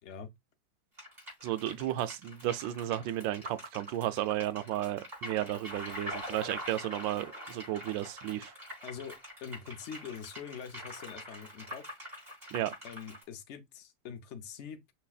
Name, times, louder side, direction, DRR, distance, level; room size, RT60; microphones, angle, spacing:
voice 1, 0.0-0.3 8.8-11.8 12.8-14.8, left 7 dB, 65° left, 0.7 m, -44 dB
sound 1, 1.0-13.2, equal, 20° right, 3.4 m, -44 dB
voice 2, 1.4-8.5 12.5-12.7, right 13 dB, 75° right, 1.3 m, -33 dB
6.0 x 3.4 x 2.4 m
omnidirectional pair, 2.1 m